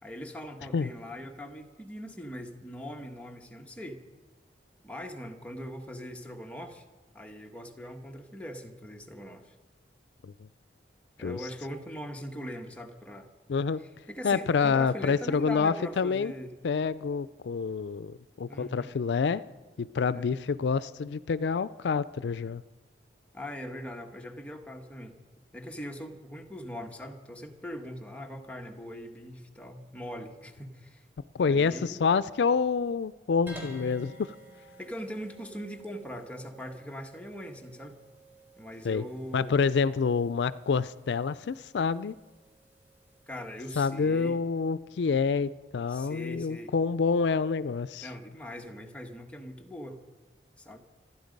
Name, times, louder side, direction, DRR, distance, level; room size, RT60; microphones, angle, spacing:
voice 1, 0.0-4.0 4.8-6.8 7.1-9.5 11.2-13.3 13.8-16.5 18.5-18.9 20.1-20.4 23.3-25.1 25.5-31.0 31.4-32.0 34.8-38.0 38.6-39.5 43.3-44.4 45.9-46.7 48.0-50.0 50.6-50.8, equal, 10° left, 2 dB, 1.3 m, -41 dB
voice 2, 13.5-13.8 14.2-16.3 16.6-19.4 19.8-22.6 31.3-34.3 38.8-39.0 39.3-42.2 43.8-48.1, left 5 dB, 75° left, 17 dB, 0.4 m, -27 dB
sound 1, 33.5-44.0, right 1 dB, 10° right, 3.8 m, -51 dB
26.5 x 10.5 x 5.3 m, 1.2 s
head